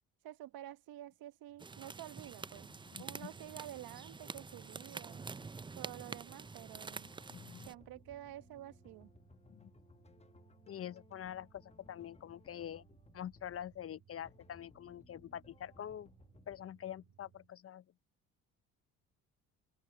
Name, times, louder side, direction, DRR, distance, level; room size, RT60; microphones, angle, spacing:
voice 1, 0.2-2.7 3.0-5.3 5.7-7.1 7.6-9.1, right 13 dB, 70° right, 1.5 m, -50 dB
sound 1, 1.5-17.6, right 8 dB, 45° right, 1.9 m, -66 dB
sound 2, 1.6-7.7, right 4 dB, 15° right, 0.4 m, -47 dB
sound 3, 2.2-16.7, left 4 dB, 15° left, 1.1 m, -63 dB
voice 2, 2.9-3.3 7.3-7.7 9.5-9.7 10.7-12.9 13.1-16.1 16.5-17.8, left 10 dB, 35° left, 0.6 m, -45 dB
open air
supercardioid pair, 70°, 38 cm